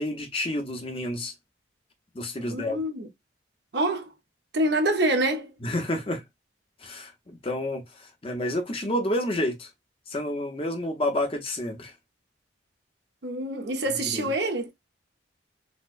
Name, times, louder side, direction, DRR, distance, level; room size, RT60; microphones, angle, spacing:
voice 1, 0.0-1.3 2.1-2.8 5.6-6.2 6.8-9.7 10.1-11.9 14.0-14.3, left 1 dB, 30° left, 0.7 m, -29 dB
voice 2, 2.4-3.1 3.7-4.1 4.5-5.5 13.2-14.7, right 1 dB, 60° right, 0.8 m, -26 dB
4.1 x 2.2 x 2.5 m
head